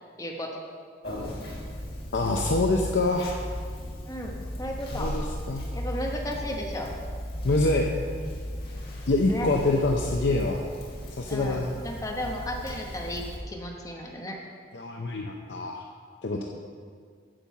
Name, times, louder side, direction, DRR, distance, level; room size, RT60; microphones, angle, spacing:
voice 1, 0.2-0.5 4.1-5.1 5.7-6.9 9.3-9.5 11.3-14.4, left 1 dB, 20° left, 0 dB, 1.0 m, -34 dB
Conversation, 1.0-13.4, equal, 55° left, 1.7 m, -36 dB
voice 2, 2.1-3.4 4.9-5.6 7.4-7.9 9.1-10.6 11.2-11.8 14.7-15.8 16.2-16.4, left 2 dB, 70° left, 1 dB, 0.6 m, -25 dB
8.8 x 5.4 x 7.4 m, 2.1 s
head